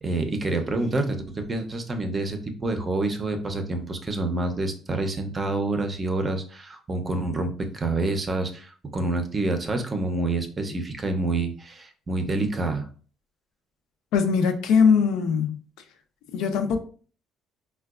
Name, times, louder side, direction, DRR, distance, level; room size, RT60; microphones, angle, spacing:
voice 1, 0.0-12.9, right 2 dB, 25° right, 0.5 m, -27 dB
voice 2, 14.1-15.6 16.3-16.8, left 6 dB, 85° left, 0.5 m, -21 dB
4.5 x 2.2 x 2.3 m
cardioid pair, 125°, 0 cm